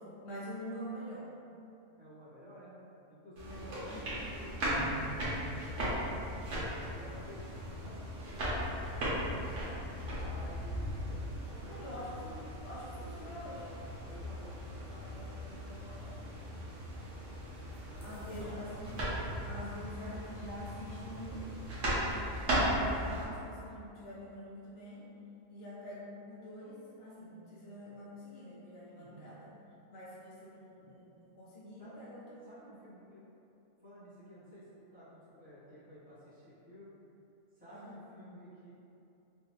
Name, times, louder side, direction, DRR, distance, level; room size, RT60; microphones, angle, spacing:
voice 1, 0.2-1.3 3.5-4.1 11.6-13.7 18.0-18.9 19.5-21.6 22.6-25.1 25.5-29.5 29.9-32.3 32.7-32.8 37.7-38.0, equal, 65° left, -7 dB, 0.8 m, -46 dB
voice 2, 2.0-2.7 3.1-6.4 6.9-9.4 10.0-11.9 14.1-16.2 17.8-18.7 28.9-29.3 31.8-31.9 32.4-33.4 33.8-37.0 37.5-38.7, equal, 10° right, -13 dB, 1.0 m, -53 dB
sound 1, 3.4-23.2, equal, 80° right, 1.2 m, -37 dB
3.2 x 2.3 x 3.0 m, 2.8 s
omnidirectional pair, 1.3 m